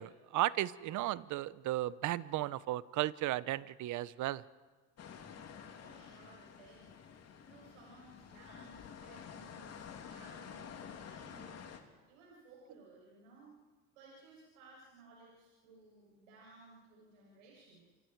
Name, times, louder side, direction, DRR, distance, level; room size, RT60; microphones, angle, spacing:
voice 1, 0.0-4.4, right 15 dB, 55° right, 18 dB, 0.9 m, -35 dB
sound 1, 5.0-11.8, left 7 dB, 45° left, 3.2 m, -50 dB
voice 2, 5.8-6.9 7.4-11.7 12.1-13.5 13.9-17.9, right 3 dB, 85° right, -4 dB, 7.6 m, -59 dB
28.5 x 25.5 x 4.7 m, 1.3 s
supercardioid pair, 85°, 36 cm